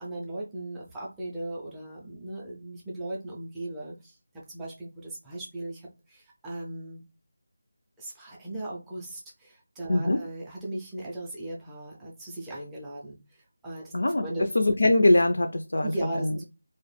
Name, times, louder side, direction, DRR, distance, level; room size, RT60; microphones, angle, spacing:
voice 1, 0.0-4.2 4.5-7.0 8.0-13.2 13.6-13.9 14.2-14.5 15.8-16.4, right 1 dB, 5° right, -5 dB, 0.4 m, -37 dB
voice 2, 9.9-10.2 13.9-14.2 14.6-16.4, left 1 dB, 75° left, 6 dB, 0.4 m, -22 dB
2.3 x 2.0 x 3.2 m, 0.29 s
figure-of-eight pair, 180°, 0 cm